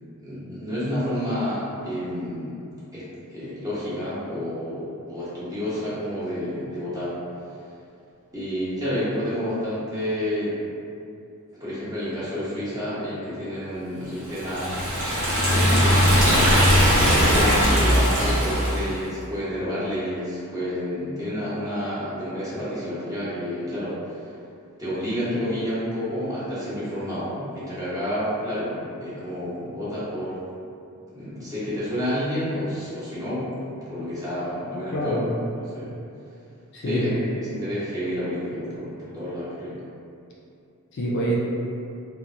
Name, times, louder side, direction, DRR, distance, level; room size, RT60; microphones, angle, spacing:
voice 1, 0.2-2.5 2.9-7.2 8.3-10.6 11.6-14.9 15.5-16.5 17.0-24.0 24.8-30.4 31.1-35.3 35.6-36.0 36.9-39.8, equal, 15° right, -11 dB, 0.8 m, -29 dB
Liquid, 14.3-18.9, equal, 75° right, 1.0 m, -19 dB
voice 2, 34.9-35.4 36.7-37.1 40.9-41.4, right 1 dB, 50° left, -4 dB, 0.4 m, -26 dB
2.9 x 2.1 x 2.5 m, 2.5 s
head